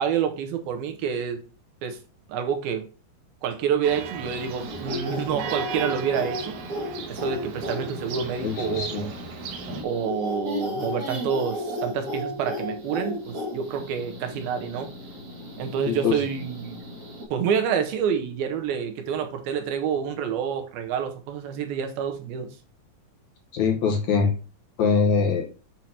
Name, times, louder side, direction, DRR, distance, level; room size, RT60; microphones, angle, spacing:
voice 1, 0.0-1.4 1.8-2.0 2.3-2.8 3.4-6.6 7.1-9.1 9.8-14.9 15.6-16.8 17.3-22.5, right 7 dB, 85° right, 2.8 m, -28 dB
Church bell, 3.8-9.8, right 5 dB, 65° right, 2.0 m, -37 dB
sound 1, 4.3-17.2, left 1 dB, 45° right, 1.0 m, -35 dB
voice 2, 8.4-9.0 15.9-16.2 23.5-24.3 24.8-25.4, left 5 dB, 65° left, 2.1 m, -23 dB
7.8 x 3.0 x 5.6 m
omnidirectional pair, 4.2 m